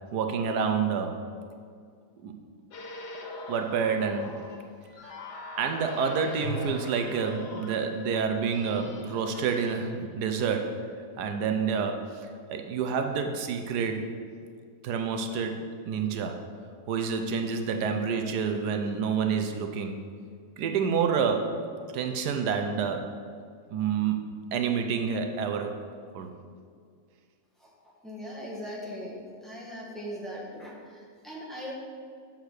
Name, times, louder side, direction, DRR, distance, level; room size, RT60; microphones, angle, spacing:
voice 1, 0.1-1.2 2.2-2.3 3.5-4.4 5.0-5.1 5.6-10.7 11.2-14.1 14.8-16.4 16.9-20.0 20.6-21.5 21.9-23.1 23.7-25.8 26.1-26.3, right 6 dB, 80° right, 5 dB, 1.3 m, -28 dB
sound 1, 2.7-9.8, left 3 dB, 90° left, 1.6 m, -41 dB
voice 2, 28.0-31.7, equal, ahead, -5 dB, 1.6 m, -39 dB
6.5 x 6.5 x 6.5 m, 2.1 s
omnidirectional pair, 1.7 m